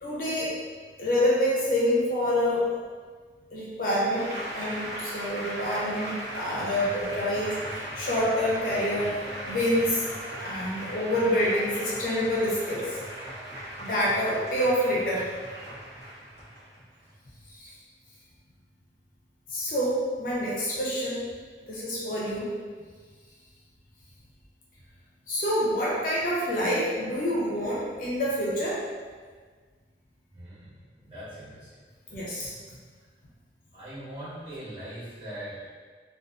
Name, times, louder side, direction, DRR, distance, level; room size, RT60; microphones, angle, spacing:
voice 1, 0.0-0.5 1.0-2.7 3.5-4.3 4.5-10.0 10.4-13.0 13.8-15.3 17.5-17.7 19.5-21.2 21.7-22.5 25.3-28.8 32.1-32.8, equal, 50° left, -7 dB, 0.5 m, -27 dB
Applause, 4.1-17.1, right 1 dB, 65° right, 0.8 m, -38 dB
voice 2, 30.3-31.7 33.7-35.7, right 1 dB, 30° right, -13 dB, 1.1 m, -41 dB
2.4 x 2.3 x 2.3 m, 1.5 s
head